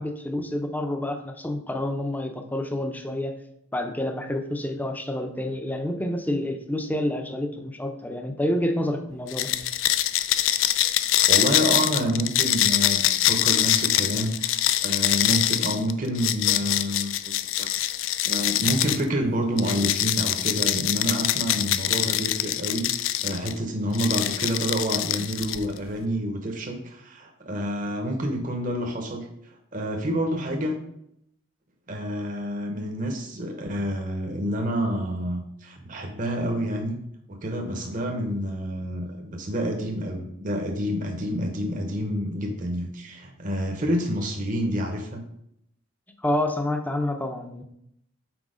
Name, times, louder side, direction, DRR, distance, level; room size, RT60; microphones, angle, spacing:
voice 1, 0.0-3.3 3.7-9.5 46.2-47.6, left 1 dB, 10° left, 5 dB, 0.6 m, -28 dB
sound 1, 9.3-19.0 19.6-23.5 23.9-25.8, left 13 dB, 65° left, 0.4 m, -24 dB
voice 2, 11.3-17.1 17.6-17.7 18.2-30.8 31.9-37.0 37.3-45.2, equal, 40° right, 2 dB, 0.8 m, -28 dB
6.1 x 4.6 x 5.0 m, 0.76 s
head